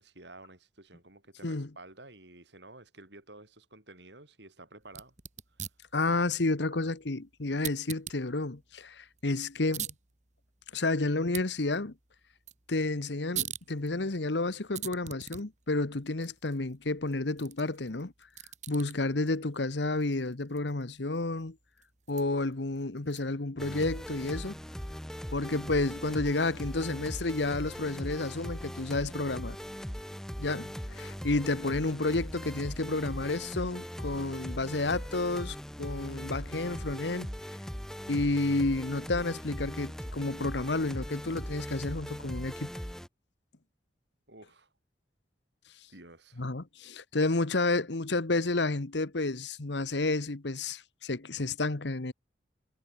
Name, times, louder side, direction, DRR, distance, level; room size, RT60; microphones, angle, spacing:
voice 1, 0.0-5.1 5.6-5.7 6.7-6.9 44.3-44.7 45.9-46.4, right 2 dB, 65° right, 7.7 m, -52 dB
sound 1, 4.8-23.5, right 10 dB, 40° right, 2.4 m, -45 dB
voice 2, 5.9-9.9 10.7-11.9 12.7-18.1 18.7-21.6 22.1-24.6 25.3-29.6 30.4-37.3 38.1-42.7 46.4-52.1, left 2 dB, 70° left, 1.2 m, -31 dB
sound 2, 23.6-43.1, equal, 5° left, 1.5 m, -40 dB
head